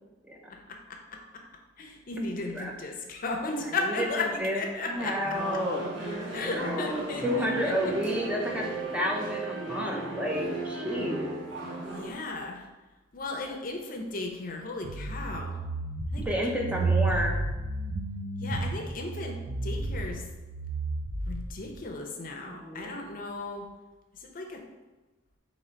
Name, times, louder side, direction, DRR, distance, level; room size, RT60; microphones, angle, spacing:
voice 1, 0.5-1.2 1.8-5.4 6.2-7.9 11.9-12.7 13.1-15.6 16.1-16.7 18.4-20.2 21.3-23.7 24.1-24.6, left 3 dB, 45° left, 3 dB, 0.6 m, -35 dB
voice 2, 3.6-4.6 4.9-5.8 6.3-11.3 16.2-17.4 22.5-22.9, equal, 5° right, -1 dB, 0.5 m, -31 dB
sound 1, 5.0-12.1, right 2 dB, 85° right, 1.2 m, -35 dB
sound 2, 14.8-21.7, right 3 dB, 65° right, 0.6 m, -32 dB
3.9 x 2.9 x 4.3 m, 1.1 s
head